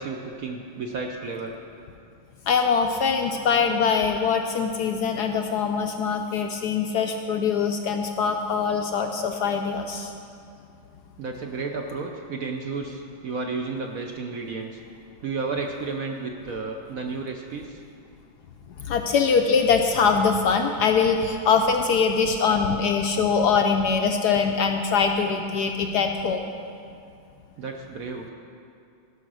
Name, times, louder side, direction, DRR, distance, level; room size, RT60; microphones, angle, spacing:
voice 1, 0.0-1.5 11.2-14.8 15.2-17.8 27.6-28.3, right 4 dB, 65° right, 2 dB, 0.8 m, -32 dB
voice 2, 2.5-10.1 18.8-26.5, left 5 dB, 75° left, 5 dB, 1.0 m, -23 dB
16.0 x 5.7 x 6.2 m, 2.5 s
omnidirectional pair, 2.1 m